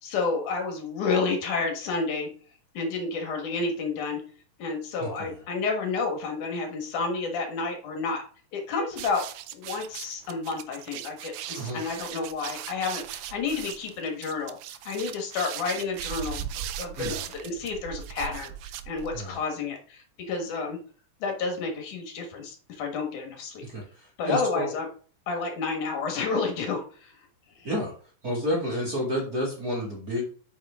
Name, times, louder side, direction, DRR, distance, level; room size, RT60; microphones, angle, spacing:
voice 1, 0.0-2.3 2.7-4.2 4.6-8.2 8.5-9.2 9.5-16.5 16.8-18.5 18.9-20.8 21.2-23.7 24.2-24.9 25.3-27.1 27.6-27.7, left 4 dB, 70° left, 2 dB, 2.9 m, -30 dB
voice 2, 5.0-5.3 11.5-11.8 16.9-17.2 19.1-19.4 23.6-24.7 27.6-27.9 28.2-30.2, equal, 30° right, -2 dB, 2.2 m, -30 dB
sound 1, 8.9-19.4, right 11 dB, 85° right, 1.5 m, -38 dB
8.6 x 5.0 x 3.6 m, 0.42 s
omnidirectional pair, 3.7 m